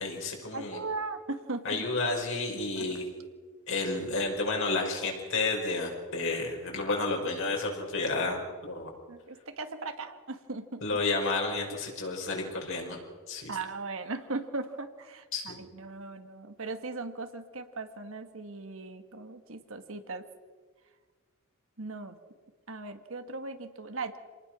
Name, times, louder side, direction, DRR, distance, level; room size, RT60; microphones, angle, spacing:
voice 1, 0.0-0.8 1.6-3.0 3.7-8.9 10.8-13.0 13.3-13.6 15.3-15.6, left 3 dB, 60° left, 1 dB, 5.6 m, -31 dB
voice 2, 0.5-1.8 2.7-3.0 9.1-10.8 13.5-20.2 21.8-22.2 22.7-24.2, right 3 dB, 60° right, 8 dB, 1.7 m, -38 dB
27.5 x 19.5 x 6.3 m, 1.5 s
head